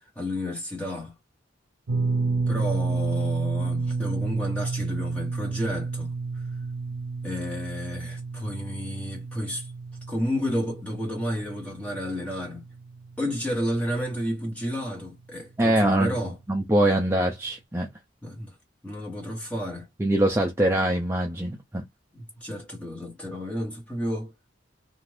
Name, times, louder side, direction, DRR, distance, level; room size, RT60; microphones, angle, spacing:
voice 1, 0.1-1.1 2.5-6.4 7.2-9.7 10.1-12.6 13.2-16.4 18.2-18.5 18.8-19.9 22.1-24.3, equal, 5° left, 1.1 m, -31 dB
sound 1, 1.9-14.1 14.4-14.6 16.3-16.4, right 4 dB, 80° right, 0.5 m, -30 dB
voice 2, 15.6-16.2 16.5-17.9 20.0-21.8, right 1 dB, 15° right, 0.5 m, -23 dB
2.6 x 2.4 x 3.2 m
head